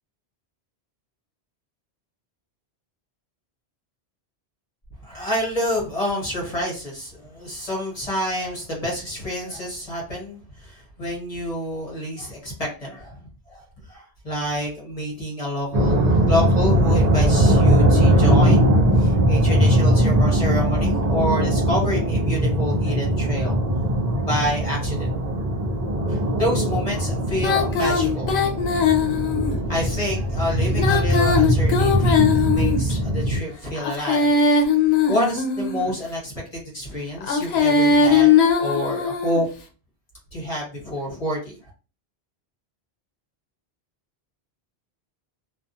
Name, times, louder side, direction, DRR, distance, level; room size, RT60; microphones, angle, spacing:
voice 1, 5.0-23.6 24.2-25.1 26.1-28.3 29.7-34.4 35.1-39.5 40.3-41.7, left 1 dB, 35° left, -3 dB, 1.1 m, -28 dB
sound 1, 15.7-33.4, right 1 dB, 50° right, 0.6 m, -20 dB
Female singing, 27.4-29.6 30.7-33.0 33.8-35.9 37.2-39.4, left 5 dB, 75° left, 0.8 m, -20 dB
2.4 x 2.3 x 2.6 m, 0.35 s
omnidirectional pair, 1.1 m